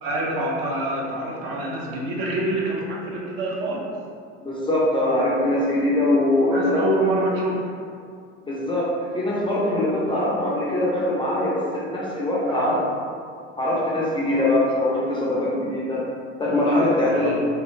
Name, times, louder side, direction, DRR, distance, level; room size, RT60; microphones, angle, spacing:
voice 1, 0.0-3.9 6.5-7.7 12.5-12.8 14.3-14.5 17.1-17.3, right 1 dB, 50° right, -3 dB, 0.6 m, -26 dB
voice 2, 4.4-6.8 8.4-12.8 13.6-16.0 16.4-17.3, left 1 dB, 15° left, -6 dB, 0.5 m, -22 dB
2.3 x 2.0 x 3.1 m, 2.2 s
figure-of-eight pair, 75°, 35 cm